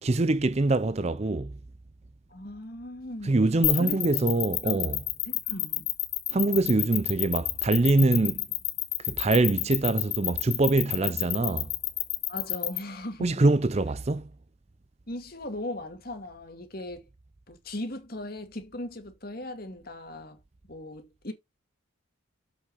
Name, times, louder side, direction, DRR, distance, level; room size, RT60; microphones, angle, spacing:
voice 1, 0.0-1.6 3.2-5.0 6.3-8.5 9.0-11.7 13.2-14.3, right 2 dB, 30° right, 0.5 m, -24 dB
voice 2, 2.3-3.4 3.8-4.2 4.6-5.0 5.3-5.9 12.3-13.3 15.1-17.0 17.5-20.4 20.7-21.3, left 1 dB, 50° left, 2.4 m, -38 dB
sound 1, 3.6-12.8, left 16 dB, 85° left, 1.9 m, -28 dB
7.8 x 6.5 x 4.1 m
head